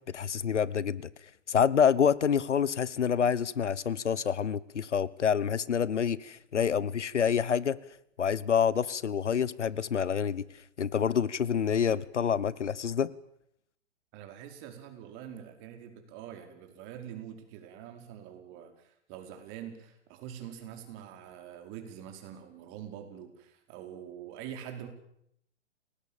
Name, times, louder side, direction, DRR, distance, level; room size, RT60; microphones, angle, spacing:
voice 1, 0.1-1.1 1.5-7.8 8.2-10.4 10.8-13.1, left 7 dB, 80° left, 1.2 m, -27 dB
voice 2, 14.1-24.9, right 9 dB, 35° right, 5.1 m, -45 dB
28.5 x 19.5 x 7.4 m
hypercardioid pair, 125°, 35 cm